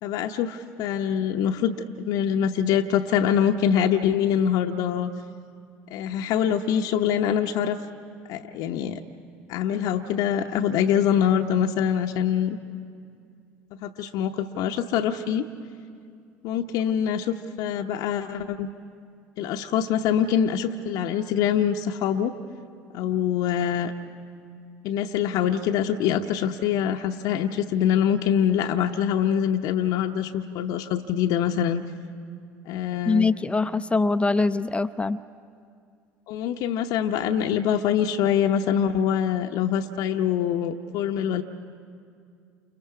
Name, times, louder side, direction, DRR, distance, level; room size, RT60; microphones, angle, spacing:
voice 1, 0.0-5.1 5.9-7.8 8.3-9.0 9.5-12.6 13.8-15.5 16.4-18.7 19.4-22.3 22.9-23.9 24.8-31.8 32.7-33.3 36.3-41.4, left 9 dB, 60° left, 3 dB, 0.8 m, -24 dB
voice 2, 33.1-35.2, left 3 dB, 15° left, 13 dB, 0.6 m, -23 dB
29.5 x 29.0 x 4.8 m, 2.3 s
hypercardioid pair, 65°, 8 cm